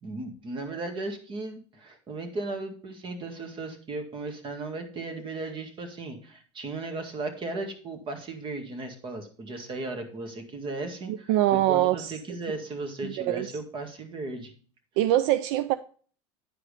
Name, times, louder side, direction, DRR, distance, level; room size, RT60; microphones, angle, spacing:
voice 1, 0.0-14.5, right 2 dB, 35° right, 2.0 m, -36 dB
voice 2, 11.1-12.1 13.0-13.5 15.0-15.8, right 14 dB, 70° right, 0.4 m, -24 dB
10.0 x 4.8 x 4.9 m
supercardioid pair, 115°, 15 cm